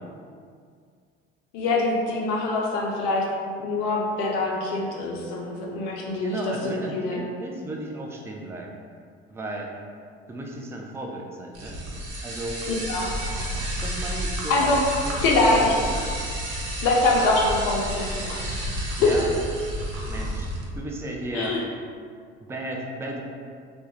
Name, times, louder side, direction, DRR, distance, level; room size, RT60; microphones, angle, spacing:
voice 1, 1.5-3.3 3.6-6.4 6.6-7.2 12.7-13.1 14.5-14.8 15.2-15.9 16.8-18.5 19.0-19.1 21.3-21.6, left 2 dB, 70° left, -2 dB, 0.5 m, -24 dB
voice 2, 6.2-8.7 9.3-9.7 10.3-11.8 12.2-12.6 13.8-14.8 15.0-15.9 19.0-19.3 20.1-21.6 22.4-23.2, right 1 dB, 10° right, 0 dB, 0.3 m, -34 dB
sound 1, 11.5-20.6, right 1 dB, 55° right, 0.7 m, -31 dB
2.2 x 2.0 x 3.0 m, 2.1 s
hypercardioid pair, 60°, 29 cm